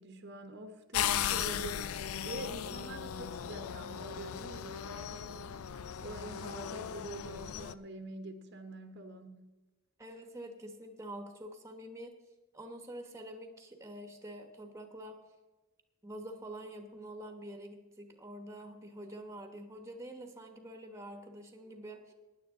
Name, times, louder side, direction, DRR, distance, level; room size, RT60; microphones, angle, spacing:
voice 1, 0.0-9.5, right 2 dB, 55° right, 7 dB, 1.1 m, -46 dB
sound 1, 0.9-7.7, left 9 dB, 90° left, 0.5 m, -37 dB
voice 2, 10.0-12.1 12.5-15.2 16.0-22.1, right 1 dB, 15° right, 6 dB, 1.2 m, -46 dB
16.0 x 10.5 x 3.7 m, 1.1 s
head